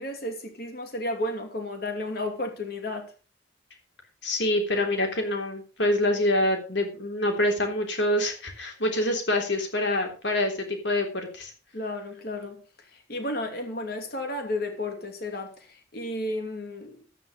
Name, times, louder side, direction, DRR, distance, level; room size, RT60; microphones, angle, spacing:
voice 1, 0.0-3.1 11.7-12.6 12.9-16.9, left 1 dB, 50° left, 2.8 m, -33 dB
voice 2, 4.2-11.5, left 1 dB, 65° left, 3.4 m, -26 dB
12.5 x 8.9 x 5.1 m
head